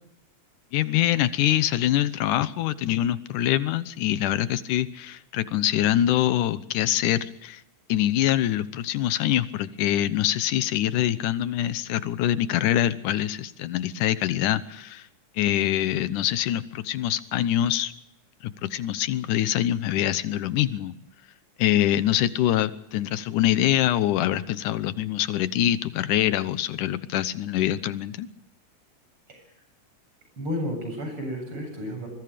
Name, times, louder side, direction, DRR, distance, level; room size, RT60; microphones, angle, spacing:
voice 1, 0.7-7.6 7.9-15.1 15.4-17.9 18.4-20.9 21.6-28.3, left 12 dB, 85° left, 14 dB, 2.5 m, -24 dB
voice 2, 30.4-32.1, left 1 dB, 40° right, 4 dB, 8.9 m, -32 dB
25.0 x 22.0 x 5.1 m, 0.78 s
omnidirectional pair, 3.5 m